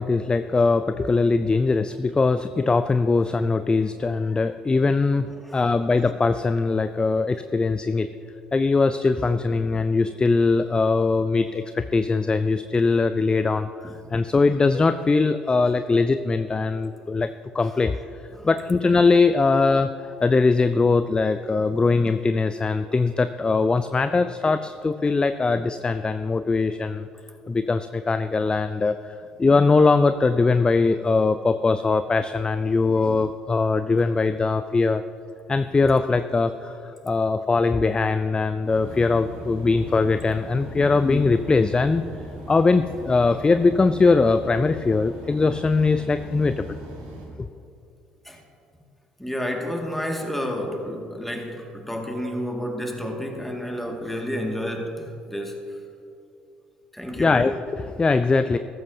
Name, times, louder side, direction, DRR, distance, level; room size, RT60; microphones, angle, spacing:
voice 1, 0.0-8.1 8.5-17.3 17.5-18.0 18.4-27.1 27.5-35.0 35.5-42.0 42.5-46.8 57.2-58.6, left 3 dB, 20° left, 11 dB, 0.4 m, -21 dB
sound 1, 38.6-47.2, equal, 80° right, 2.4 m, -39 dB
voice 2, 49.2-55.6 56.9-57.4, equal, 5° left, 2 dB, 2.0 m, -30 dB
14.5 x 13.5 x 2.7 m, 2.6 s
hypercardioid pair, 55°, 4 cm